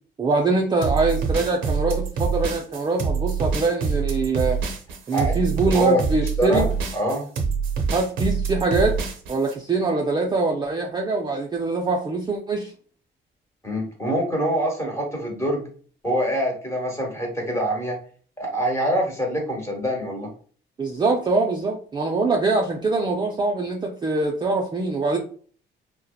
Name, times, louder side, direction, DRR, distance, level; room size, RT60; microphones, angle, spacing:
voice 1, 0.2-4.6 5.1-6.7 7.9-9.0 9.3-12.7 20.8-25.2, right 3 dB, 20° right, 1 dB, 0.3 m, -23 dB
sound 1, 0.8-9.5, right 5 dB, 80° right, 0.6 m, -25 dB
voice 2, 5.1-6.0 6.4-6.7 6.9-7.2 13.6-15.7 16.0-18.0 18.4-20.3, equal, 15° left, 0 dB, 1.0 m, -25 dB
2.7 x 2.1 x 2.3 m, 0.43 s
cardioid pair, 90°, 20 cm